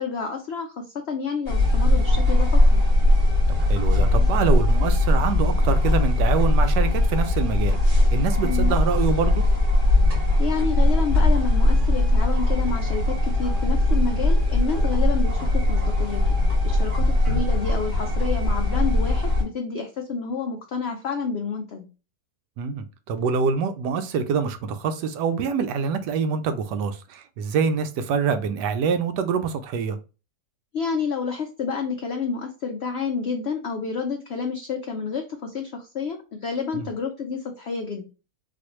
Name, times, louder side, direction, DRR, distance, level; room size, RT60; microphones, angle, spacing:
voice 1, 0.0-2.8 8.4-8.8 10.1-16.2 16.6-21.9 30.7-38.0, left 5 dB, 85° left, 0.5 m, -29 dB
sound 1, 1.5-19.4, left 1 dB, 65° right, 2.2 m, -20 dB
voice 2, 3.6-9.5 22.6-30.0 36.7-36.8, right 6 dB, 85° right, 1.2 m, -25 dB
4.1 x 2.5 x 2.9 m
omnidirectional pair, 1.8 m